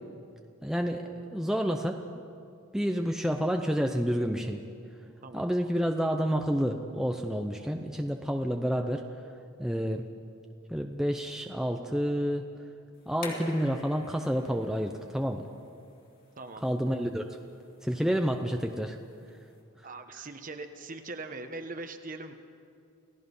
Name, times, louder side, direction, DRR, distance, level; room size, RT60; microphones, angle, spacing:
voice 1, 0.6-2.0 2.7-4.6 5.3-9.0 9.6-10.1 10.7-12.5 13.1-15.5 16.6-17.2 17.8-19.0, equal, ahead, 3 dB, 0.7 m, -29 dB
sound 1, 12.9-19.6, left 2 dB, 40° left, 3.5 m, -48 dB
voice 2, 16.4-16.7 19.8-22.3, right 3 dB, 40° right, 7 dB, 1.2 m, -41 dB
29.0 x 17.0 x 5.5 m, 2.5 s
head